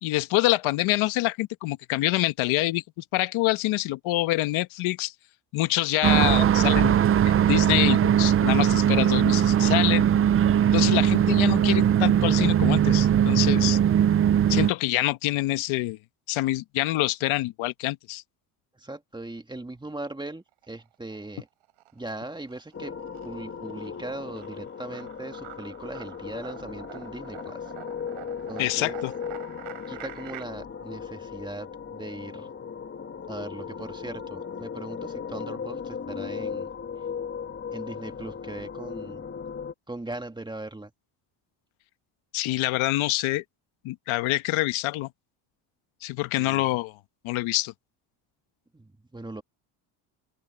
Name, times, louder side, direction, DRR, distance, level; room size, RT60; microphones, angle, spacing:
voice 1, 0.0-2.8 3.1-5.1 5.5-7.1 7.5-10.0 10.7-13.8 14.5-16.0 16.3-18.2 28.6-29.1 42.3-43.4 43.8-45.1 46.0-47.0 47.2-47.7, left 18 dB, 75° left, 1.2 m, -26 dB
sound 1, 6.0-14.7, right 9 dB, 30° right, 0.4 m, -20 dB
voice 2, 18.7-21.5 21.9-23.0 23.2-27.7 28.5-29.0 29.9-32.5 33.3-36.7 37.7-39.3 39.9-40.9 46.4-46.8 48.7-49.4, right 2 dB, 10° right, 2.1 m, -39 dB
sound 2, 20.5-21.3 21.6-30.4, right 17 dB, 75° right, 3.4 m, -46 dB
sound 3, 22.7-39.7, left 6 dB, 25° left, 1.8 m, -37 dB
open air
cardioid pair, 110°, 49 cm